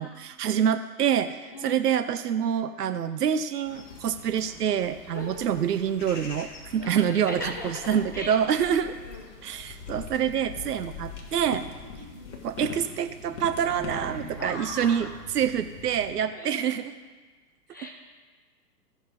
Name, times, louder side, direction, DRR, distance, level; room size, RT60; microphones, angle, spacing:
voice 1, 0.0-8.9 9.4-11.6 12.4-16.9, right 8 dB, 70° right, 10 dB, 0.6 m, -26 dB
voice 2, 1.5-1.8 5.1-5.6 6.8-9.3 11.8-12.4 14.4-15.2 16.3-16.8 17.7-17.9, left 1 dB, 15° left, 0 dB, 0.4 m, -40 dB
sound 1, 3.7-16.1, left 5 dB, 45° left, 1.8 m, -43 dB
sound 2, 12.6-15.9, right 3 dB, 50° right, 2.8 m, -44 dB
13.5 x 6.3 x 5.1 m, 1.4 s
figure-of-eight pair, 120°, 49 cm